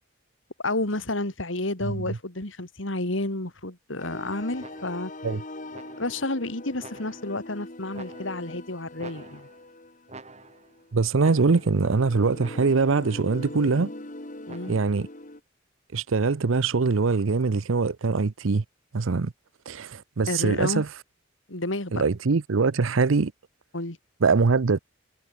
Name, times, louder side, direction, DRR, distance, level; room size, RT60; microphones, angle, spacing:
voice 1, 0.6-5.1 6.0-9.5 14.5-14.7 20.3-20.8 21.5-21.9 23.7-24.0, left 2 dB, 75° left, 3.1 m, -30 dB
voice 2, 1.8-2.2 5.2-5.4 10.9-13.9 14.7-15.1 15.9-18.6 18.9-19.3 19.7-20.9 21.9-23.3 24.2-24.8, right 4 dB, 85° right, 0.7 m, -23 dB
sound 1, 4.0-15.4, left 2 dB, 40° left, 2.6 m, -42 dB
sound 2, 4.6-5.2 5.7-6.3 6.8-7.5 7.9-8.6 9.0-9.7 10.1-10.8 11.2-11.9 12.4-13.0 14.5-15.1, right 3 dB, 35° right, 3.1 m, -48 dB
head